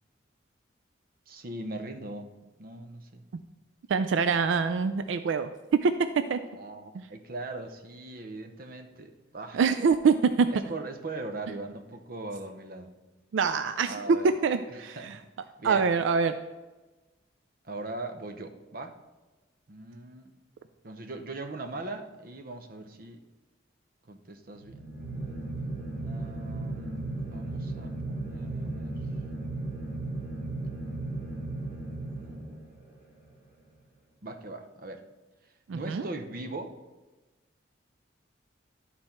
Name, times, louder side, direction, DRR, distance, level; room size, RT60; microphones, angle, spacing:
voice 1, 1.3-2.3 2.6-3.2 6.5-9.6 10.5-12.9 13.8-14.3 14.7-15.2 15.6-15.9 17.6-19.0 19.7-20.3 20.8-23.2 24.1-24.9 26.0-29.0 32.2-32.7 34.2-35.0 35.7-36.8, right 2 dB, 50° right, 6 dB, 0.7 m, -40 dB
voice 2, 3.9-5.5 5.8-5.9 6.3-6.4 6.9-7.0 9.5-10.5 13.3-14.0 14.4-15.1 15.6-16.4 35.7-36.1, right 5 dB, 85° right, 10 dB, 0.4 m, -25 dB
sound 1, 24.6-32.9, right 2 dB, 10° right, 2.6 m, -35 dB
11.5 x 4.2 x 4.4 m, 1.2 s
head